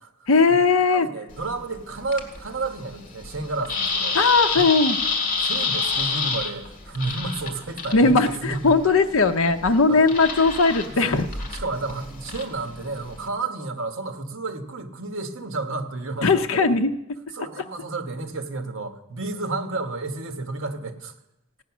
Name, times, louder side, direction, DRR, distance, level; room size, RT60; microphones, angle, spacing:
voice 1, 0.3-1.1 4.1-5.0 7.9-11.3 16.2-16.9 17.6-17.7, left 4 dB, 65° left, 6 dB, 0.6 m, -19 dB
voice 2, 0.9-4.2 4.4-4.6 5.4-8.8 9.9-10.1 10.8-16.7 17.3-21.1, right 3 dB, 65° right, 5 dB, 1.5 m, -31 dB
sound 1, 1.3-13.3, left 4 dB, 40° left, 2.1 m, -30 dB
16.0 x 9.5 x 6.1 m, 0.88 s
head